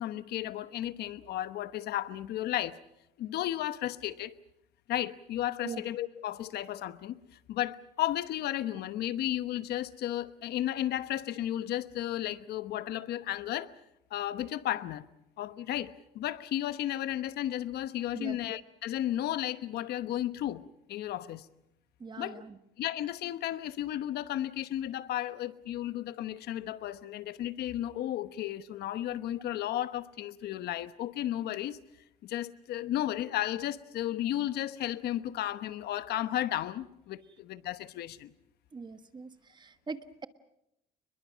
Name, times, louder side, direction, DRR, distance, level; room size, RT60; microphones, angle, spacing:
voice 1, 0.0-2.8 3.2-4.3 4.9-7.2 7.5-13.7 14.1-15.1 15.4-20.6 20.9-21.5 22.2-22.4 22.8-31.8 32.2-38.3, left 13 dB, 70° left, 1.1 m, -34 dB
voice 2, 18.1-18.6 22.0-22.6 38.7-40.3, right 4 dB, 25° right, 1.5 m, -42 dB
29.0 x 21.5 x 6.3 m
cardioid pair, 110°, 17 cm